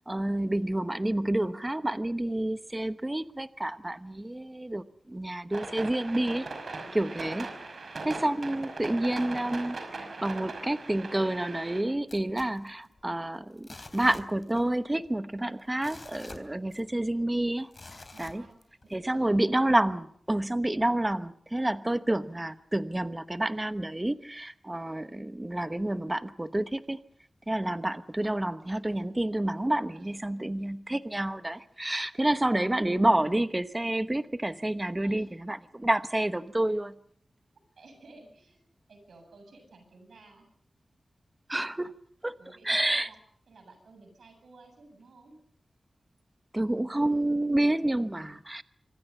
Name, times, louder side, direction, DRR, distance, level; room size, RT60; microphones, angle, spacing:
voice 1, 0.1-6.5 6.9-7.5 8.0-13.7 13.9-17.7 18.2-18.4 18.9-27.0 27.5-36.9 41.5-41.9 42.2-43.1 46.5-48.6, right 1 dB, 15° right, 11 dB, 1.0 m, -29 dB
sound 1, 5.5-11.8, right 3 dB, 55° right, 5.6 m, -39 dB
voice 2, 6.8-7.3 18.1-18.6 18.8-19.5 29.9-30.5 35.0-35.3 37.5-38.6 38.9-40.5 42.4-43.2 43.5-45.4, right 2 dB, 85° right, 6 dB, 8.0 m, -54 dB
sound 2, 12.1-13.2 13.6-14.8 15.0-15.1 15.6-17.1 17.7-18.9 19.4-19.5, left 2 dB, 35° left, 3.5 m, -48 dB
26.0 x 25.5 x 5.5 m, 0.63 s
wide cardioid pair, 105°, 0 cm